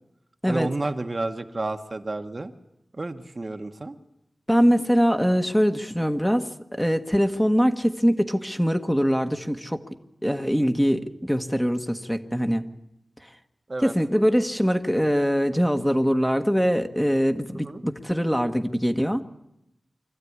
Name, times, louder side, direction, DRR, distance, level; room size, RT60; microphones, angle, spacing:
voice 1, 0.5-2.5 3.0-4.0 13.7-13.9 17.6-17.8, right 2 dB, 40° right, 6 dB, 1.2 m, -31 dB
voice 2, 4.5-9.8 10.2-12.6 13.2-13.3 13.8-19.2, equal, 5° left, 6 dB, 1.4 m, -23 dB
24.5 x 14.5 x 9.6 m, 0.86 s
wide cardioid pair, 80°, 0 cm